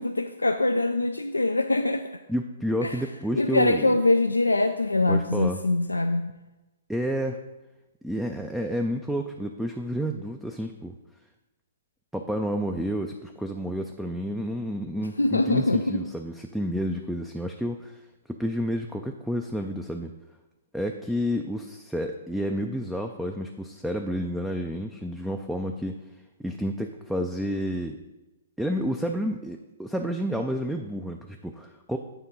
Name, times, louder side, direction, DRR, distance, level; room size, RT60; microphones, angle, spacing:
voice 1, 0.0-2.1 2.8-3.0 3.4-6.3 15.2-16.0, left 2 dB, 85° left, 8 dB, 0.3 m, -23 dB
voice 2, 2.3-4.0 5.1-5.6 6.9-7.4 8.0-10.9 12.1-18.0 18.3-20.1 20.7-26.0 26.4-28.0 28.6-32.0, equal, ahead, 3 dB, 0.4 m, -30 dB
8.9 x 3.6 x 5.4 m, 1.1 s
figure-of-eight pair, 125°, 0 cm